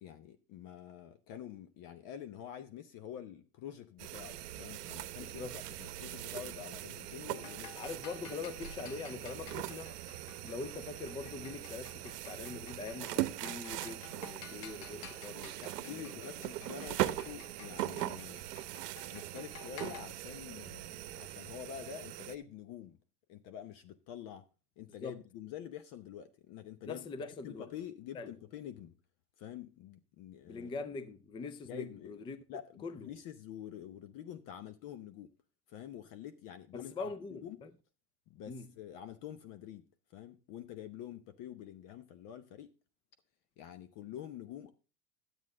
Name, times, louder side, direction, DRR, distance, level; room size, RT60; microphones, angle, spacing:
voice 1, 0.0-5.5 5.8-7.8 15.6-18.4 19.1-23.0 23.3-24.4 24.8-28.9 29.4-30.7 31.7-32.2 32.5-35.3 35.7-37.6 38.3-39.8 40.1-42.7 43.6-44.7, left 10 dB, 45° left, 0.9 m, -47 dB
sound 1, 4.0-22.4, right 14 dB, 90° right, 0.8 m, -41 dB
voice 2, 5.2-5.6 7.8-10.0 10.4-16.3 16.8-16.9 24.9-25.2 26.9-27.7 28.1-28.3 30.5-32.4 32.8-33.1 36.7-37.7 38.5-38.7, left 4 dB, 10° left, 0.4 m, -43 dB
sound 2, 7.3-20.0, left 11 dB, 80° left, 1.0 m, -54 dB
10.5 x 8.2 x 3.7 m
supercardioid pair, 130°, 47 cm